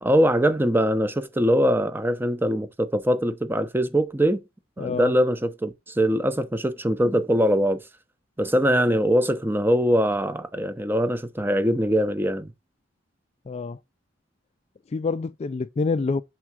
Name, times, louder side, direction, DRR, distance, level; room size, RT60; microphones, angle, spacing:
voice 1, 0.0-4.4 4.8-7.8 8.4-12.5, equal, 10° right, 0.6 m, -22 dB
voice 2, 4.8-5.1 13.5-13.8 14.9-16.2, left 4 dB, 35° left, 0.3 m, -27 dB
5.7 x 3.6 x 6.0 m
head